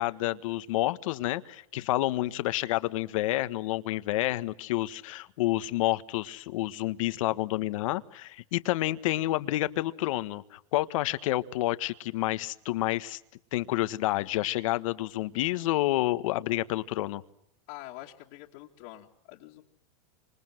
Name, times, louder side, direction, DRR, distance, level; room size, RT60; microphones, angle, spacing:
voice 1, 0.0-13.2 13.5-17.2, left 17 dB, 70° left, 13 dB, 1.4 m, -29 dB
voice 2, 17.7-19.6, left 16 dB, 50° left, -2 dB, 2.3 m, -46 dB
28.0 x 26.5 x 7.8 m, 0.72 s
supercardioid pair, 150°, 18 cm